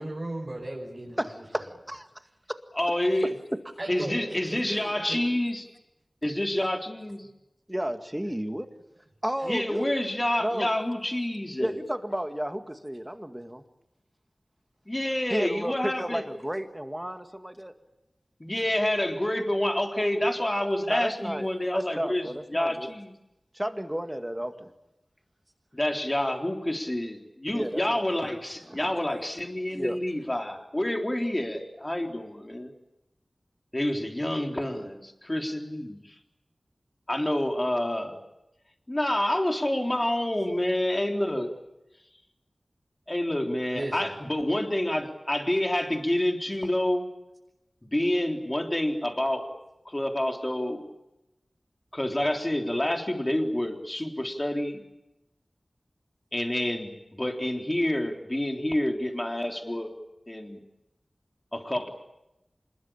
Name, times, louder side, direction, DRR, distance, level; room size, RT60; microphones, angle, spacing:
voice 1, 0.0-1.2 3.8-4.3 4.7-5.2 43.7-44.1, right 1 dB, 40° right, -2 dB, 5.6 m, -35 dB
voice 2, 1.2-2.1 7.7-8.7 9.2-9.9 10.4-10.7 11.6-13.6 15.3-17.7 20.9-22.9 23.5-24.7 27.5-28.1 28.7-28.9 29.7-30.0, equal, 10° right, 7 dB, 2.0 m, -32 dB
voice 3, 2.8-3.3 3.9-5.7 6.2-7.3 9.4-11.8 14.9-16.2 18.4-23.1 25.7-32.7 33.7-36.2 37.1-38.2 38.9-41.5 43.1-47.1 47.8-49.5 49.9-50.8 51.9-54.8 56.3-59.9 60.3-60.6 61.5-61.9, left 1 dB, 25° left, 3 dB, 3.7 m, -28 dB
26.0 x 21.5 x 8.8 m, 0.92 s
wide cardioid pair, 55°, 0 cm